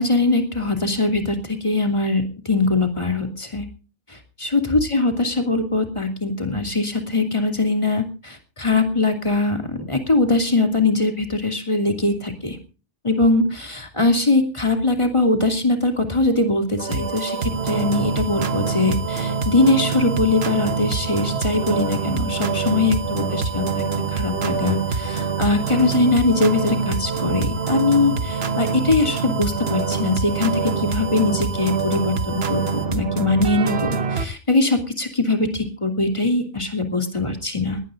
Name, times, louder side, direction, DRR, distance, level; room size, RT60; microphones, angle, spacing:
voice 1, 0.0-3.7 4.1-12.6 13.0-37.8, left 2 dB, 30° left, 5 dB, 2.9 m, -21 dB
sound 1, 16.8-34.3, right 5 dB, 75° right, 1.3 m, -25 dB
sound 2, 16.9-32.9, right 8 dB, 60° right, 1.9 m, -35 dB
21.5 x 18.5 x 2.6 m, 0.35 s
omnidirectional pair, 1.1 m